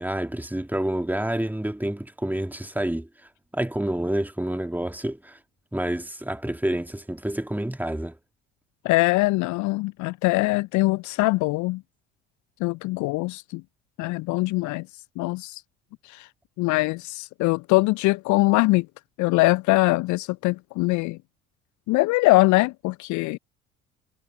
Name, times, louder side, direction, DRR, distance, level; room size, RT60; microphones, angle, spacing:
voice 1, 0.0-3.1 3.5-5.4 5.7-8.2, right 1 dB, 5° right, 2.2 m, -28 dB
voice 2, 8.8-11.8 12.6-13.6 14.0-14.9 15.2-15.6 16.0-16.3 16.6-18.9 19.2-21.2 21.9-23.4, left 22 dB, 50° left, 0.6 m, -22 dB
figure-of-eight pair, 55°, 37 cm